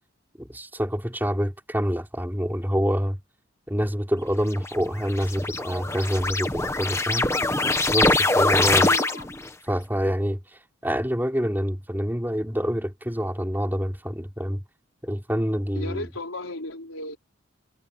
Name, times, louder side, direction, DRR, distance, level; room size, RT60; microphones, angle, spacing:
voice 1, 0.4-3.2 3.7-7.3 7.9-8.9 9.7-10.4 10.8-14.6 15.0-16.1, equal, 10° right, 4.4 m, -26 dB
sound 1, 4.5-9.5, left 2 dB, 15° left, 1.3 m, -23 dB
voice 2, 8.8-9.3 15.7-17.2, left 2 dB, 80° left, 4.0 m, -34 dB
head